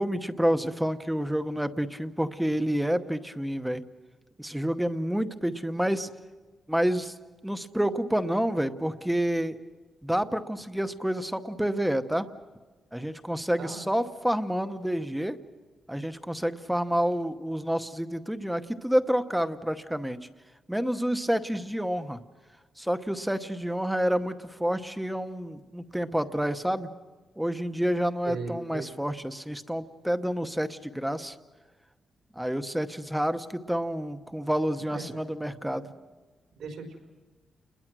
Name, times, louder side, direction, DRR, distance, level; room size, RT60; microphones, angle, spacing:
voice 1, 0.0-3.8 4.4-6.1 6.7-7.2 7.4-9.6 10.0-12.3 12.9-15.4 15.9-20.2 20.7-22.2 22.8-26.9 27.4-31.4 32.4-35.9, equal, 5° right, 9 dB, 0.9 m, -28 dB
voice 2, 28.2-28.9 34.9-35.2 36.6-37.1, right 4 dB, 80° right, 4 dB, 4.8 m, -38 dB
29.5 x 21.5 x 6.2 m, 1.3 s
wide cardioid pair, 155°, 0 cm